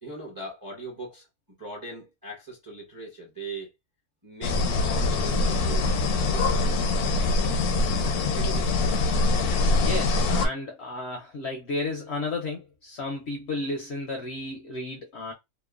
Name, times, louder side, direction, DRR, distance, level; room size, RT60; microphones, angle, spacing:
voice 1, 0.0-1.3 1.6-3.7 4.2-5.9 6.2-6.9 7.8-8.7, right 2 dB, 25° right, 0.5 m, -40 dB
sound 1, 4.4-10.5, left 3 dB, 85° left, 1.1 m, -24 dB
voice 2, 9.8-15.3, left 2 dB, 65° left, 0.7 m, -33 dB
2.9 x 2.1 x 2.3 m
omnidirectional pair, 1.5 m